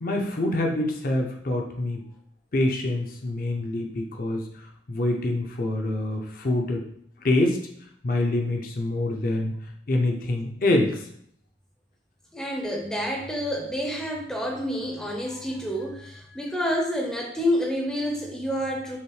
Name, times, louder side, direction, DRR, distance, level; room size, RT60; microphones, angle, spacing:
voice 1, 0.0-2.0 2.5-6.9 7.2-7.7 8.0-9.6 9.9-11.1, left 2 dB, 50° left, 2 dB, 0.5 m, -26 dB
voice 2, 12.3-19.0, equal, 5° left, 0 dB, 0.5 m, -28 dB
5.5 x 2.1 x 3.1 m, 0.67 s
head